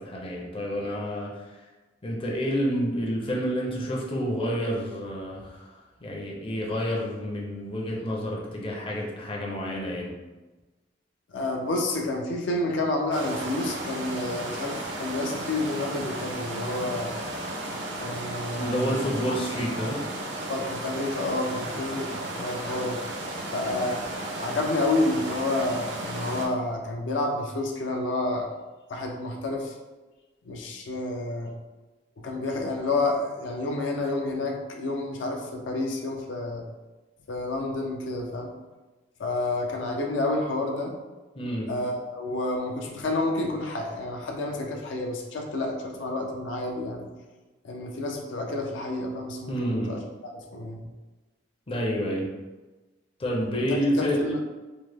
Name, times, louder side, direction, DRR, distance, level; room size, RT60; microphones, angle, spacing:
voice 1, 0.0-1.5 2.0-5.7 6.0-10.1 18.6-20.0 41.4-41.7 49.5-49.9 51.7-52.3 53.2-54.2, equal, 30° left, -2 dB, 0.5 m, -29 dB
voice 2, 11.3-17.1 18.0-19.0 20.5-23.0 23.5-24.0 24.4-28.5 28.9-29.7 30.5-31.5 32.2-36.6 37.3-38.5 39.2-40.9 41.7-47.1 47.6-50.8 53.5-54.4, left 2 dB, 80° left, 1 dB, 0.5 m, -29 dB
sound 1, 13.1-26.5, right 1 dB, 75° right, 0.6 m, -34 dB
3.1 x 2.0 x 3.3 m, 1.2 s
head